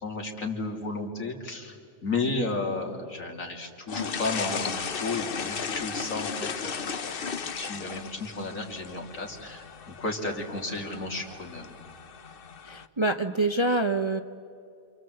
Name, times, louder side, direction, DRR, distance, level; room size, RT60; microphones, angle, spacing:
voice 1, 0.0-1.8 2.0-11.7, left 3 dB, 65° left, 2 dB, 3.2 m, -33 dB
sound 1, 3.9-12.9, left 6 dB, 45° left, 0.9 m, -36 dB
voice 2, 12.6-14.2, right 2 dB, 25° right, 6 dB, 0.7 m, -26 dB
27.5 x 27.0 x 7.9 m, 2.4 s
omnidirectional pair, 1.5 m